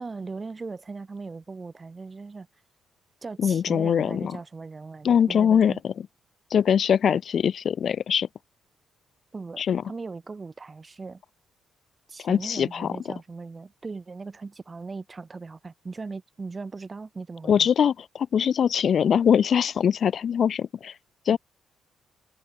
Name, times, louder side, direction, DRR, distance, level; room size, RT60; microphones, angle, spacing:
voice 1, 0.0-2.5 3.2-5.8 9.3-11.2 12.1-17.7 21.3-21.4, right 4 dB, 30° right, 1.9 m, -38 dB
voice 2, 3.4-4.3 5.0-5.9 6.5-8.3 9.6-9.8 12.2-12.9 17.5-20.9 21.3-21.4, left 8 dB, 55° left, 0.9 m, -22 dB
cardioid pair, 90°, 0 cm